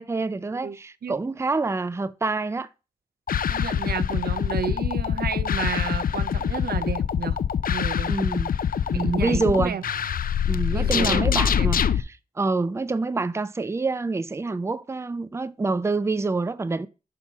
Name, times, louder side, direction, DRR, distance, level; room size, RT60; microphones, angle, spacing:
voice 1, 0.0-2.7 8.1-8.5 8.9-9.8 10.5-16.9, right 3 dB, 15° right, 0.4 m, -27 dB
voice 2, 0.6-1.2 3.5-7.4 7.7-8.2 8.9-9.8 10.7-11.3 11.5-11.7, right 7 dB, 85° right, 0.6 m, -32 dB
sound 1, 3.3-12.0, left 8 dB, 65° left, 0.4 m, -24 dB
5.8 x 4.3 x 5.9 m
wide cardioid pair, 85°, 16 cm